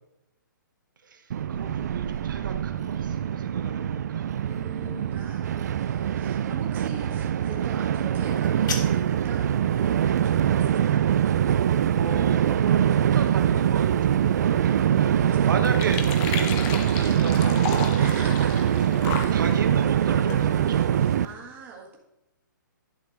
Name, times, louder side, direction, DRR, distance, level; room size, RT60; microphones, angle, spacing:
voice 1, 1.0-4.3 11.9-15.2 15.5-17.9 18.6-18.7 19.3-21.1, right 5 dB, 70° right, 5 dB, 1.1 m, -34 dB
Train, 1.3-21.3, right 9 dB, 55° right, 0.4 m, -23 dB
voice 2, 1.7-2.1 4.4-11.0 15.2-15.9 16.2-16.7 18.0-18.8 19.1-19.4 21.2-22.0, right 3 dB, 15° right, -1 dB, 1.6 m, -42 dB
sound 1, 8.2-9.3, left 4 dB, 65° left, 1.7 m, -35 dB
sound 2, 14.1-21.3, left 6 dB, 25° left, 0.9 m, -36 dB
11.5 x 5.7 x 3.9 m, 0.85 s
hypercardioid pair, 155°, 11 cm